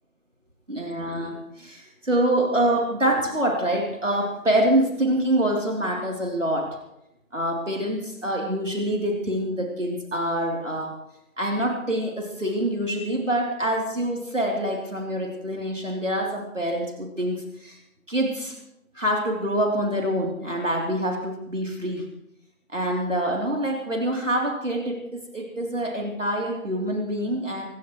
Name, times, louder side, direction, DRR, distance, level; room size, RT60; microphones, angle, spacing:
voice 1, 0.7-6.8 7.3-10.9 11.4-17.8 18.1-18.6 18.9-22.0 22.7-27.7, right 1 dB, 60° right, 0 dB, 3.4 m, -26 dB
25.0 x 15.0 x 3.1 m, 0.86 s
figure-of-eight pair, 175°, 43 cm